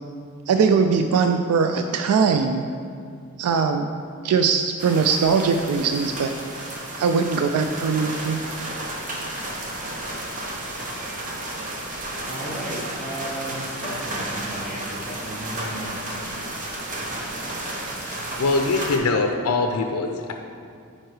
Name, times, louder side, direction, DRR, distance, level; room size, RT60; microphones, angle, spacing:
voice 1, 0.5-2.6 3.4-3.9 4.2-6.3 7.0-8.4, right 5 dB, 85° right, 6 dB, 0.3 m, -21 dB
sound 1, 4.8-19.0, right 1 dB, 35° right, 0.8 m, -32 dB
voice 2, 11.9-16.1, right 1 dB, ahead, -8 dB, 0.9 m, -35 dB
voice 3, 18.1-20.3, left 3 dB, 80° left, 4 dB, 0.5 m, -23 dB
9.1 x 4.4 x 3.2 m, 2.3 s
head